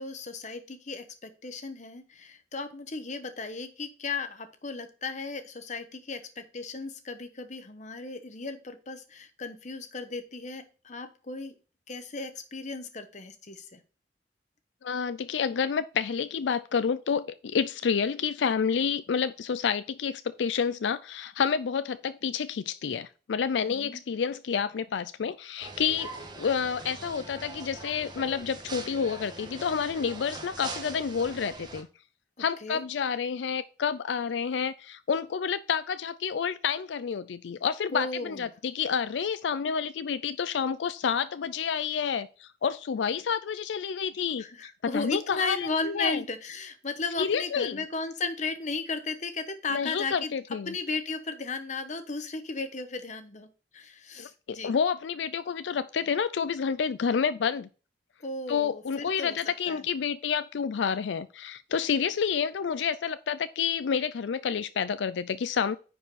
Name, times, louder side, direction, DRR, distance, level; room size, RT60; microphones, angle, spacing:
voice 1, 0.0-11.5 11.9-13.8 23.6-24.0 32.6-32.8 37.9-38.4 44.4-50.3 50.7-53.5 53.7-54.7 58.2-59.4 59.7-59.8, left 3 dB, 45° left, 1.0 m, -35 dB
voice 2, 14.8-26.1 26.4-31.9 32.4-44.4 44.8-46.2 47.2-47.8 49.7-50.8 54.2-57.7 58.5-65.8, left 6 dB, 85° left, 0.4 m, -29 dB
sound 1, 25.6-31.8, right 2 dB, 25° right, 1.3 m, -42 dB
9.9 x 4.6 x 4.1 m
head